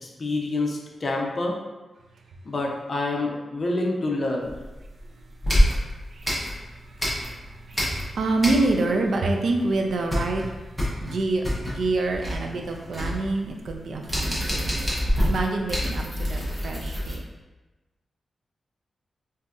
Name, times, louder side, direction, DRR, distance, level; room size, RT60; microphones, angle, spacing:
voice 1, 0.0-1.5 2.4-4.6, left 2 dB, 35° left, -1 dB, 0.5 m, -27 dB
sound 1, 4.5-5.0 5.4-7.4 7.7-9.0 9.3-9.4 9.7-17.2, equal, 5° right, 0.8 m, -26 dB
voice 2, 6.7-14.8 15.2-17.2, right 2 dB, 65° right, 2 dB, 0.3 m, -27 dB
3.8 x 2.6 x 2.4 m, 1.1 s
wide cardioid pair, 150°, 0 cm